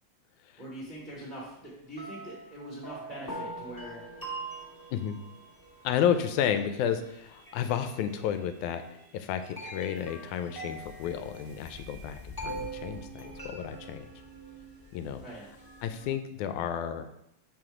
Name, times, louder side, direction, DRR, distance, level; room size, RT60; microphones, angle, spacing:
voice 1, 0.6-4.0 15.2-15.5, right 1 dB, 35° right, -6 dB, 0.7 m, -42 dB
sound 1, 2.0-16.1, right 2 dB, 15° left, 0.8 m, -44 dB
voice 2, 5.8-14.1 14.9-15.2 15.8-17.1, left 9 dB, 85° left, 9 dB, 2.0 m, -31 dB
6.0 x 5.0 x 4.8 m, 0.79 s
omnidirectional pair, 3.4 m